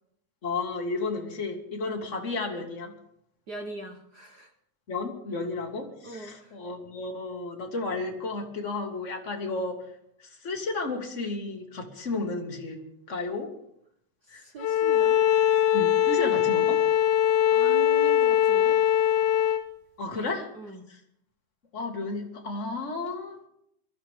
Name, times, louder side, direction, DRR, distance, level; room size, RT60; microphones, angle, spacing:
voice 1, 0.4-2.9 4.9-9.8 10.4-12.8 13.1-13.5 14.3-14.4 15.7-16.8 20.0-20.5 20.9-21.0 21.7-23.4, left 3 dB, 30° left, 2 dB, 1.9 m, -32 dB
voice 2, 3.5-4.5 6.0-6.6 14.2-15.3 17.5-18.8 20.1-20.3 20.5-20.8, right 3 dB, 75° right, 3 dB, 0.9 m, -40 dB
Bowed string instrument, 14.6-19.6, left 10 dB, 85° left, 2.4 m, -22 dB
23.0 x 13.5 x 3.6 m, 0.74 s
omnidirectional pair, 3.4 m